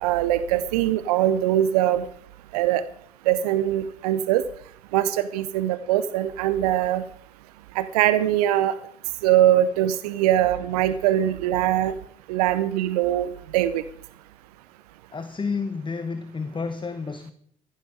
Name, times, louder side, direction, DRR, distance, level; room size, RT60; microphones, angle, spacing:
voice 1, 0.0-2.0 2.5-2.8 3.3-4.4 4.9-7.0 7.8-8.7 9.2-11.9 12.3-13.8, right 12 dB, 75° right, 14 dB, 0.6 m, -22 dB
voice 2, 15.1-17.3, left 4 dB, 25° left, 11 dB, 1.0 m, -30 dB
15.0 x 11.0 x 4.9 m, 0.65 s
figure-of-eight pair, 45°, 20 cm